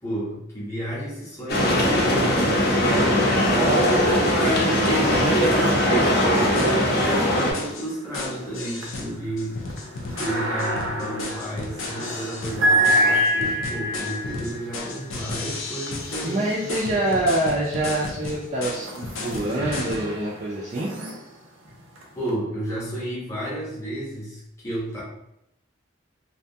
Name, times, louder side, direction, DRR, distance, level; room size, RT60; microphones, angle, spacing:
voice 1, 0.0-2.8 3.3-9.6 10.2-16.7 17.1-17.2 22.1-25.0, right 1 dB, 15° left, -7 dB, 0.8 m, -31 dB
sound 1, 1.5-7.5, left 1 dB, 50° left, 0.6 m, -20 dB
sound 2, 3.0-3.7 4.0-17.2 17.8-22.3, equal, 80° right, 0.6 m, -29 dB
voice 2, 3.4-6.7 16.2-20.9, right 1 dB, 35° right, -7 dB, 0.4 m, -26 dB
sound 3, 5.8-5.9 6.2-6.3 6.6-7.1 7.4-20.1, left 3 dB, 85° left, 0.5 m, -35 dB
2.6 x 2.2 x 2.7 m, 0.81 s
head